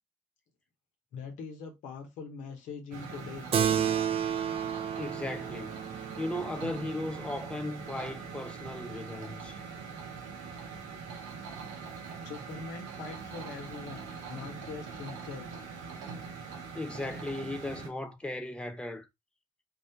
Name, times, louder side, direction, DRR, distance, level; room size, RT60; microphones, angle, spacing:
voice 1, 1.1-3.9 12.2-15.5, left 5 dB, 85° left, 0.7 m, -43 dB
sound 1, 2.9-17.9, right 5 dB, 90° right, 0.6 m, -43 dB
Keyboard (musical), 3.5-8.4, right 9 dB, 50° right, 0.4 m, -32 dB
voice 2, 5.0-9.6 16.7-19.1, left 1 dB, 10° left, 0.6 m, -37 dB
2.3 x 2.1 x 2.7 m
supercardioid pair, 50°, 13 cm